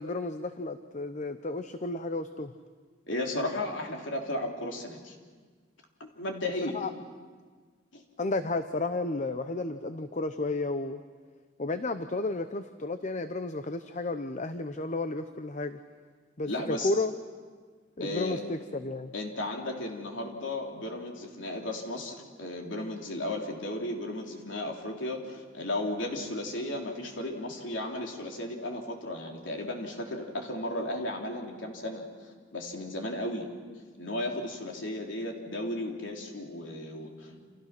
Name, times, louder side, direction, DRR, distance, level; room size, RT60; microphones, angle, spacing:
voice 1, 0.0-2.5 6.7-6.9 8.2-11.0 11.6-15.8 16.4-17.1 18.0-19.1, left 2 dB, 40° left, 10 dB, 0.8 m, -32 dB
voice 2, 3.1-5.2 6.0-6.8 7.9-8.0 16.5-16.9 18.0-18.4 19.1-33.5 34.0-37.5, left 1 dB, 75° left, 1 dB, 3.5 m, -35 dB
29.5 x 27.5 x 6.0 m, 1.5 s
head